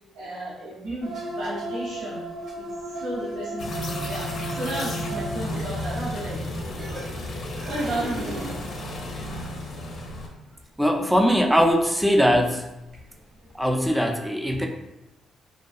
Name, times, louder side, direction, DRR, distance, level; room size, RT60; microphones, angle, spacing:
voice 1, 0.1-2.2 2.5-2.7 3.0-7.3 7.6-8.6, right 1 dB, 85° right, -9 dB, 0.8 m, -33 dB
sound 1, 1.0-5.7 6.1-6.5 6.8-8.7 9.4-9.6 11.5-11.9 12.1-12.2 12.9-13.5 13.8-13.9, right 1 dB, 65° right, 1.2 m, -36 dB
sound 2, 3.6-10.3, left 1 dB, 55° left, 0.5 m, -33 dB
sound 3, 5.0-5.2 5.5-7.3 7.6-8.7, right 1 dB, 45° right, 0.7 m, -38 dB
voice 2, 10.8-12.7 13.5-14.7, equal, 5° right, 1 dB, 0.3 m, -21 dB
2.3 x 2.3 x 2.4 m, 0.92 s
cardioid pair, 90°, 0 cm